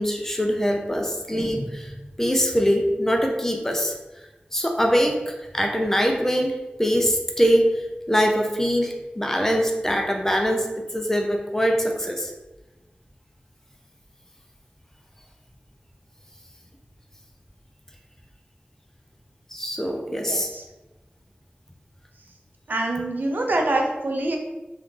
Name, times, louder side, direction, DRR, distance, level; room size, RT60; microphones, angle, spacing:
voice 1, 0.0-3.9 4.5-7.7 8.1-12.3 19.5-20.5, equal, 15° left, 2 dB, 0.5 m, -23 dB
voice 2, 20.1-20.6 22.7-24.4, right 2 dB, 70° right, 1 dB, 0.5 m, -25 dB
2.9 x 2.4 x 3.6 m, 1.1 s
wide cardioid pair, 65°, 3 cm